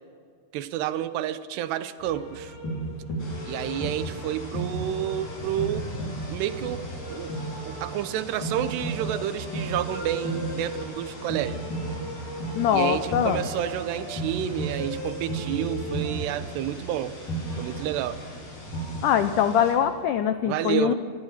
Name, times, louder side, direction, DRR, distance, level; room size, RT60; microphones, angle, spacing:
voice 1, 0.5-2.5 3.4-5.9 6.3-7.4 7.7-11.6 12.7-17.2 17.6-18.2 20.4-20.9, right 11 dB, 90° right, 13 dB, 3.0 m, -30 dB
sound 1, 2.0-19.7, right 1 dB, 50° left, 6.4 m, -34 dB
sound 2, 3.2-19.7, left 2 dB, 30° left, 6.9 m, -44 dB
voice 2, 12.5-13.4 19.0-20.9, left 9 dB, 85° left, 9 dB, 1.8 m, -23 dB
26.0 x 19.5 x 5.8 m, 2.2 s
omnidirectional pair, 4.7 m